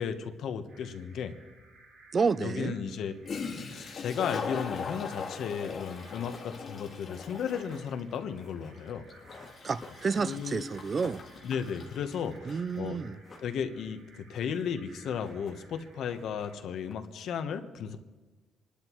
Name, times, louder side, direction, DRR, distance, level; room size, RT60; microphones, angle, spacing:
voice 1, 0.0-1.3 2.4-3.1 3.7-9.0 10.2-10.6 11.4-13.0 13.4-18.0, left 7 dB, 70° left, 1.0 m, -34 dB
sound 1, 0.7-16.5, right 2 dB, 60° right, 3.8 m, -58 dB
voice 2, 2.1-2.8 9.6-11.2 12.4-13.2, right 5 dB, 30° right, 0.4 m, -30 dB
Toilet flush, 3.2-12.6, left 5 dB, 45° left, 1.9 m, -40 dB
sound 2, 5.0-10.5 10.8-12.6 12.9-13.9 14.2-14.8 15.0-17.3, left 3 dB, 25° left, 2.7 m, -53 dB
27.0 x 11.5 x 3.1 m
cardioid pair, 145°, 0 cm